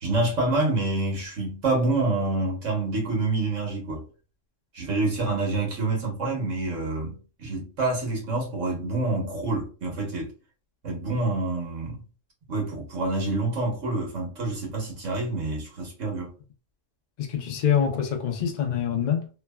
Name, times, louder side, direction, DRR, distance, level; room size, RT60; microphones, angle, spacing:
voice 1, 0.0-4.0 4.7-10.3 10.8-12.0 12.5-16.3, right 2 dB, 80° right, 1.5 m, -27 dB
voice 2, 17.2-19.3, left 8 dB, 55° left, 0.5 m, -25 dB
3.2 x 2.1 x 2.2 m
omnidirectional pair, 1.3 m